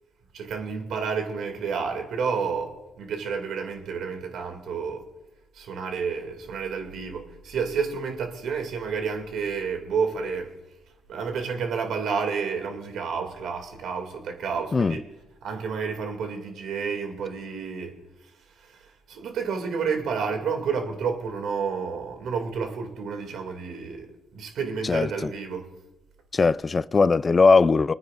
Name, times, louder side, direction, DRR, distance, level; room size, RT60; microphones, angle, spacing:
voice 1, 0.3-5.0 5.6-10.5 11.1-15.0 15.4-17.9 18.6-18.7 19.1-24.1 24.3-25.7, right 5 dB, 75° right, 2.3 m, -30 dB
voice 2, 24.8-25.3 26.3-27.9, left 4 dB, 30° left, 0.3 m, -20 dB
27.0 x 9.6 x 2.5 m
cardioid pair, 90°, 0 cm